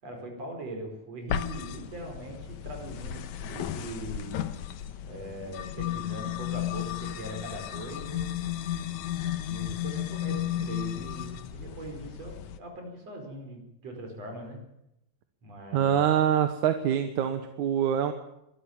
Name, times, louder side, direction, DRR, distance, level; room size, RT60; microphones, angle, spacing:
voice 1, 0.0-4.4 5.1-8.2 9.5-14.6 15.4-16.0, right 1 dB, 55° right, 3 dB, 6.2 m, -41 dB
sound 1, 1.3-12.6, left 11 dB, 75° left, 2.4 m, -34 dB
voice 2, 15.7-18.1, right 9 dB, 80° right, 7 dB, 2.7 m, -25 dB
23.5 x 13.0 x 9.0 m, 0.84 s
omnidirectional pair, 3.4 m